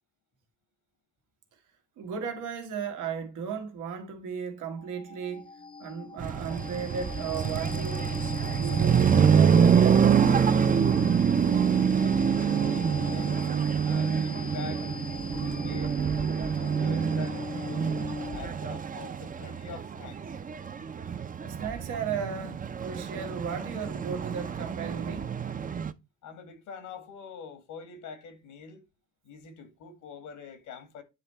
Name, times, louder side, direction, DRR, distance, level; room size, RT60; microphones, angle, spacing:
voice 1, 2.0-5.5 5.8-8.2 8.6-10.5 21.4-25.4, right 6 dB, 90° right, 1.7 m, -35 dB
sound 1, 4.8-18.7, left 5 dB, 20° left, 0.7 m, -40 dB
sound 2, 6.2-25.9, right 7 dB, 30° right, 0.5 m, -26 dB
voice 2, 11.7-13.4 13.8-14.9 15.3-16.0 16.4-17.9 18.3-20.4 26.2-28.8 29.2-31.0, left 5 dB, 85° left, 1.9 m, -45 dB
9.5 x 3.3 x 4.4 m
cardioid pair, 90°, 30 cm